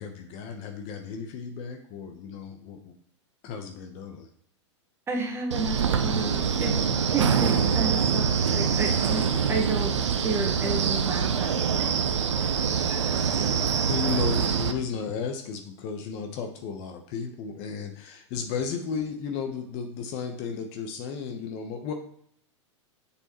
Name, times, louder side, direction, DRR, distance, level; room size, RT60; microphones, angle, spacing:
voice 1, 0.0-2.9 3.4-4.3 13.8-21.9, left 6 dB, 40° left, 4 dB, 1.2 m, -34 dB
voice 2, 5.1-6.8 7.1-9.9 10.2-12.0, right 3 dB, 15° right, 1 dB, 1.6 m, -31 dB
Wind, 5.5-14.7, right 6 dB, 70° right, 0.8 m, -25 dB
7.0 x 6.8 x 3.2 m, 0.66 s
figure-of-eight pair, 100°, 16 cm